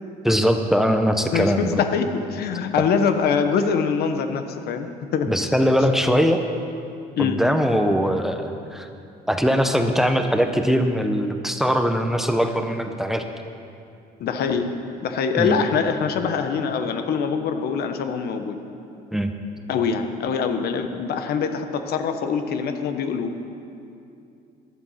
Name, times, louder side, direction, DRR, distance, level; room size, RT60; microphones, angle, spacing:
voice 1, 0.2-1.8 2.8-2.9 5.3-6.4 7.2-8.9 9.3-13.2 15.4-15.6 19.1-19.3, equal, ahead, 5 dB, 0.9 m, -21 dB
voice 2, 1.3-5.3 7.2-7.4 14.2-14.7 15.0-18.6 19.7-23.3, left 6 dB, 70° left, 7 dB, 1.3 m, -24 dB
15.5 x 11.5 x 5.9 m, 2.6 s
cardioid pair, 110°, 17 cm